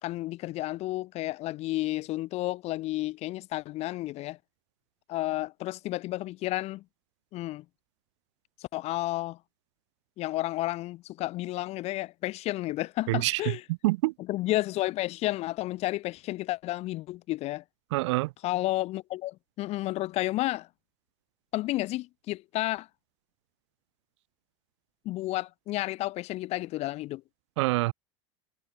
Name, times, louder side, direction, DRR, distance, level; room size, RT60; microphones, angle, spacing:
voice 1, 0.0-4.4 5.1-6.8 7.3-7.6 8.6-9.4 10.2-13.6 14.3-17.6 18.4-20.7 21.5-22.9 25.0-27.2, left 17 dB, 45° left, 2.9 m, -31 dB
voice 2, 13.1-13.4 13.8-14.1 17.9-18.3 27.6-27.9, right 21 dB, 80° right, 0.6 m, -25 dB
supercardioid pair, 140°, 15 cm